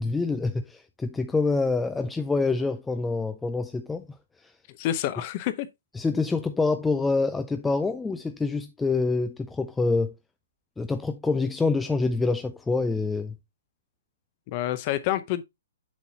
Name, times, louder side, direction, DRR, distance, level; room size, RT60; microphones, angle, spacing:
voice 1, 0.0-4.1 4.4-4.5 6.0-10.1 10.8-13.4, left 3 dB, 5° left, 0.3 m, -26 dB
voice 2, 4.7-5.7 14.5-15.4, left 13 dB, 30° left, 0.7 m, -28 dB
7.1 x 6.0 x 2.7 m
hypercardioid pair, 165°, 0 cm